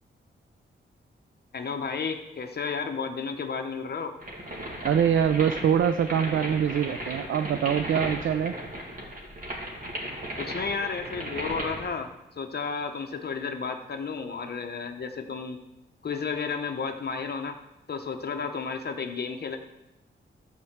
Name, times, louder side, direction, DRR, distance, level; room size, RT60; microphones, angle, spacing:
voice 1, 1.5-4.1 10.4-12.1 12.4-15.6 16.0-17.6 17.9-19.6, left 5 dB, 50° left, 5 dB, 0.8 m, -32 dB
sound 1, 4.2-11.9, right 1 dB, 40° right, 2.1 m, -36 dB
voice 2, 4.8-8.5, right 8 dB, 70° right, 10 dB, 0.4 m, -24 dB
13.0 x 4.4 x 7.2 m, 0.95 s
wide cardioid pair, 140°, 21 cm